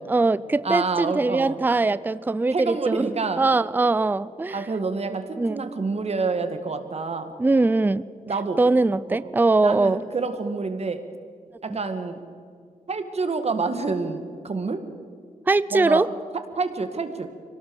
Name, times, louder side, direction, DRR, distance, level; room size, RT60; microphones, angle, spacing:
voice 1, 0.1-3.1 3.4-4.6 5.4-5.6 7.4-8.0 8.6-10.0 15.5-16.1, right 3 dB, 15° right, 18 dB, 0.4 m, -21 dB
voice 2, 0.6-1.6 2.5-3.4 4.5-7.3 8.3-8.6 9.1-9.3 9.6-11.0 11.6-12.2 12.9-14.8 15.7-16.0 16.6-17.3, right 4 dB, 50° right, 9 dB, 2.0 m, -28 dB
24.5 x 18.0 x 7.1 m, 2.2 s
cardioid pair, 85°, 14 cm